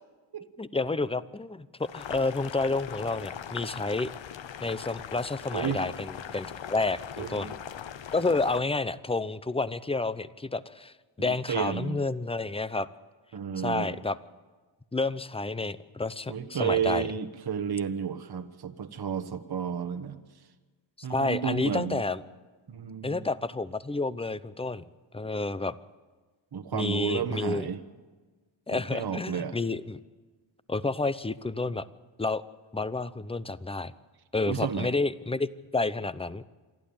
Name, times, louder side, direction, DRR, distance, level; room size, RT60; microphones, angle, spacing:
voice 1, 0.6-4.1 4.6-7.5 8.1-12.9 13.6-14.2 14.9-17.1 21.0-22.2 23.0-24.8 25.1-25.7 26.7-27.6 28.7-30.0 30.7-31.9 32.2-32.4 32.7-33.9 34.3-35.5 35.7-36.4, left 3 dB, 10° left, 16 dB, 0.7 m, -30 dB
Boiling, 1.8-8.6, left 9 dB, 70° left, 1.0 m, -40 dB
voice 2, 5.5-5.8 7.2-7.5 11.2-12.0 13.3-14.0 16.3-20.2 21.0-22.0 22.7-23.2 26.5-27.8 28.7-29.6 34.5-34.9, right 7 dB, 55° right, 9 dB, 1.3 m, -32 dB
27.5 x 12.0 x 8.8 m, 1.3 s
cardioid pair, 75°, 46 cm